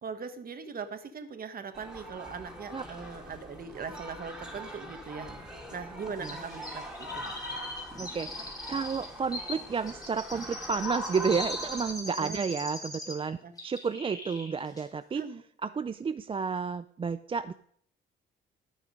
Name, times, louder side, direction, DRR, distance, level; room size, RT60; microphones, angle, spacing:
voice 1, 0.0-5.3 5.7-7.3 12.2-12.4 13.4-13.5 15.2-15.4, right 5 dB, 50° right, 8 dB, 1.5 m, -40 dB
sound 1, 1.7-11.9, equal, 5° right, 3.0 m, -41 dB
Chirp tweet, 6.2-13.3 13.6-14.5 14.8-14.9, left 2 dB, 20° left, 3.8 m, -41 dB
voice 2, 8.0-13.4 13.6-15.2 15.6-17.5, right 5 dB, 25° right, 11 dB, 0.4 m, -31 dB
16.5 x 6.3 x 5.2 m, 0.63 s
cardioid pair, 90°, 20 cm